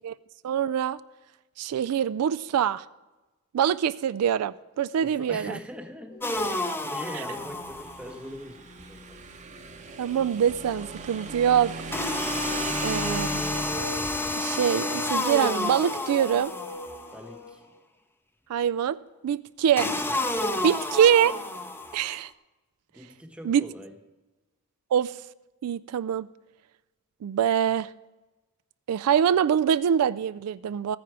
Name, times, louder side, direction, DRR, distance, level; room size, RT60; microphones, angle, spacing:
voice 1, 0.4-1.0 1.6-2.8 3.5-5.6 10.0-11.7 12.8-13.5 14.4-16.5 18.5-19.0 19.2-19.9 20.6-21.4 21.9-22.3 23.4-23.6 24.9-25.1 25.6-26.3 27.2-27.9 28.9-31.0, right 9 dB, 75° right, 0.3 m, -24 dB
voice 2, 5.0-6.4 6.8-9.2 17.1-17.6 20.6-20.8 22.9-24.0, equal, 5° right, 1.0 m, -42 dB
sound 1, 6.1-6.5 6.9-7.0 7.4-7.5 9.6-17.5, left 1 dB, 85° left, 3.9 m, -43 dB
sound 2, 6.2-8.2 11.9-17.2 19.8-22.2, left 2 dB, 10° left, 0.6 m, -30 dB
Motorcycle / Engine, 7.3-14.3, right 3 dB, 30° right, 0.8 m, -38 dB
14.0 x 9.5 x 4.8 m
head